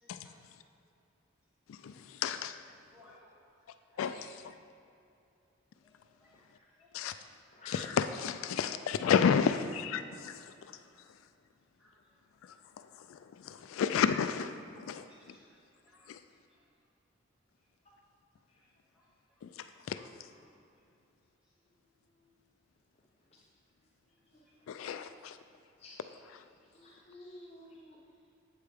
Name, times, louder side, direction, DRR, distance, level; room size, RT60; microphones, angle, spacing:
voice 1, 0.0-0.4 2.0-2.1 2.8-3.3 3.9-4.3 5.8-5.9 6.2-6.3 6.8-6.9 11.8-11.9 15.1-16.0, left 1 dB, 5° right, -8 dB, 1.9 m, -61 dB
voice 2, 1.7-2.6 4.0-4.5 6.9-7.1 7.7-10.5 13.1-15.0 16.1-16.2 19.4-19.5 19.9-20.0 24.7-25.4 26.3-26.4, left 7 dB, 80° left, 10 dB, 0.3 m, -31 dB
voice 3, 24.7-25.0 25.8-26.0 26.7-28.0, left 2 dB, 30° left, -3 dB, 0.7 m, -51 dB
8.1 x 7.8 x 3.5 m, 2.6 s
head